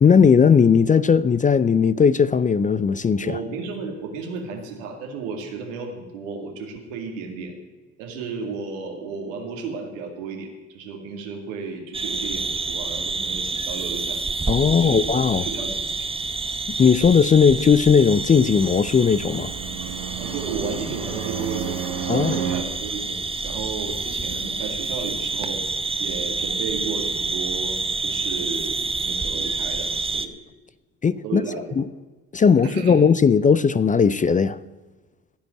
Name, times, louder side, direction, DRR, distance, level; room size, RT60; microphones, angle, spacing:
voice 1, 0.0-3.4 14.5-15.5 16.8-19.5 22.1-22.5 31.0-31.4 31.8-31.9 32.3-34.6, left 6 dB, 20° left, 0.4 m, -17 dB
voice 2, 3.2-7.5 8.0-14.2 14.6-15.0 15.3-16.1 20.2-25.6 26.0-28.7 29.0-30.3 31.2-31.8 32.6-32.9, right 4 dB, 90° right, 2.3 m, -33 dB
sound 1, 11.9-30.3, right 3 dB, 15° right, 0.9 m, -28 dB
Fixed-wing aircraft airplane, 17.7-22.6, right 9 dB, 70° right, 1.9 m, -32 dB
15.0 x 5.2 x 9.5 m
hypercardioid pair, 65°, 37 cm